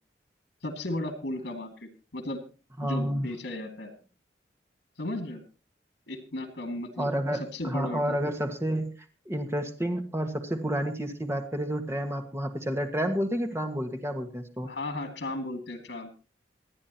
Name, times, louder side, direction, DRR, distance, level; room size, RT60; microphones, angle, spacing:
voice 1, 0.6-2.4 2.8-3.9 5.0-5.4 6.1-8.2 14.6-16.1, left 1 dB, 85° left, 7 dB, 2.4 m, -35 dB
voice 2, 2.8-3.3 7.0-8.9 9.2-14.7, equal, 15° right, 5 dB, 1.6 m, -30 dB
27.0 x 9.8 x 2.9 m, 0.33 s
head